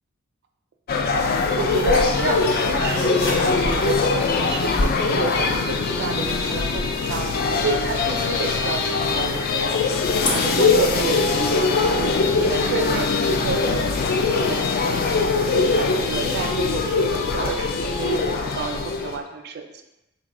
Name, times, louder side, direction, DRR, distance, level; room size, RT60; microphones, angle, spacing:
sound 1, 0.9-19.2, left 4 dB, 45° left, 0.3 m, -22 dB
sound 2, 1.2-11.2, left 1 dB, 65° left, 1.0 m, -36 dB
voice 1, 1.6-12.1 12.4-15.0 15.3-19.8, right 4 dB, 50° right, 5 dB, 0.4 m, -30 dB
3.9 x 2.3 x 3.6 m, 0.95 s
head